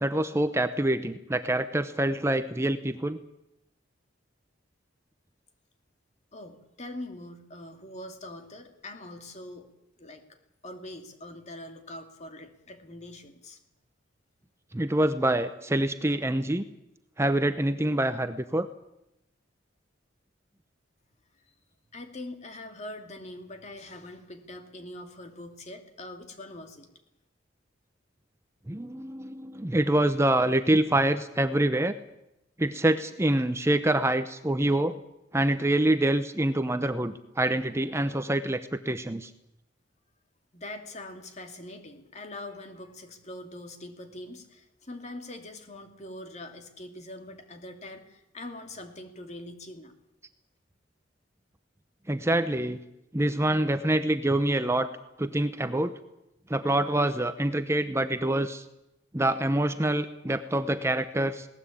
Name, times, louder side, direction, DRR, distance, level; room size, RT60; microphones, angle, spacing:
voice 1, 0.0-3.2 14.7-16.6 17.2-18.7 28.7-32.0 32.6-35.0 35.3-39.3 52.1-52.8 53.1-54.9 55.2-55.9 56.5-58.6 59.1-61.5, right 1 dB, 15° right, 10 dB, 0.8 m, -26 dB
voice 2, 6.3-9.7 10.0-10.2 10.6-13.6 21.9-26.9 40.5-49.9, left 1 dB, 35° left, 6 dB, 2.6 m, -43 dB
20.5 x 18.0 x 8.5 m, 0.89 s
head